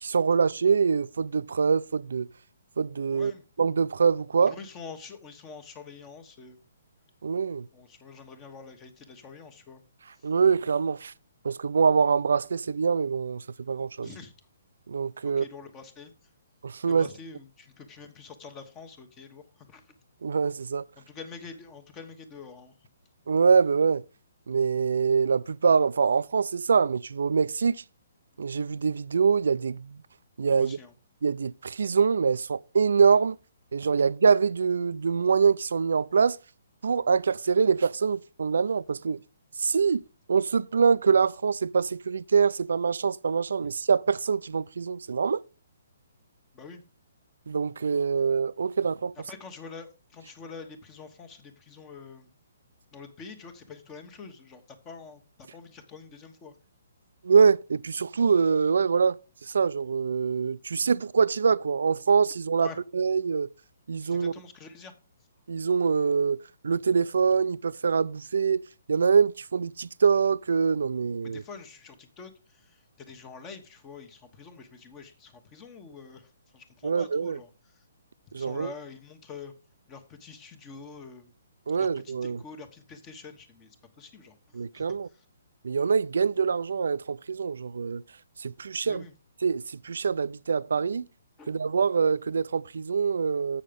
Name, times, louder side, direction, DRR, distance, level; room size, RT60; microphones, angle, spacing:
voice 1, 0.0-2.3 2.8-3.3 3.6-4.6 7.2-7.7 10.2-11.1 11.4-14.1 14.9-15.5 16.6-17.1 20.2-20.8 23.3-24.0 24.5-27.8 28.4-30.0 30.4-30.8 31.2-33.4 33.7-36.4 36.8-39.2 39.6-45.4 47.5-49.1 57.2-59.2 59.5-63.5 63.9-64.3 65.5-66.4 66.6-68.6 68.9-71.4 76.8-77.4 78.3-78.7 81.7-82.4 84.5-85.1 85.6-88.0 88.4-89.0 89.4-91.1 91.5-93.6, right 5 dB, 80° right, 0.4 m, -24 dB
voice 2, 3.1-3.4 4.5-6.6 7.7-9.8 14.0-14.3 15.2-16.1 16.9-19.4 19.7-19.8 21.0-22.7 30.6-30.9 43.6-43.7 46.5-46.8 49.3-52.3 52.9-55.2 55.5-56.5 62.6-62.8 64.0-64.9 71.2-76.3 76.5-77.5 78.4-79.5 79.9-81.3 81.8-83.7 84.0-84.3 84.7-85.2 88.8-89.1 91.4-91.5, left 5 dB, 20° left, 1.1 m, -46 dB
7.6 x 6.4 x 5.1 m
hypercardioid pair, 155°, 0 cm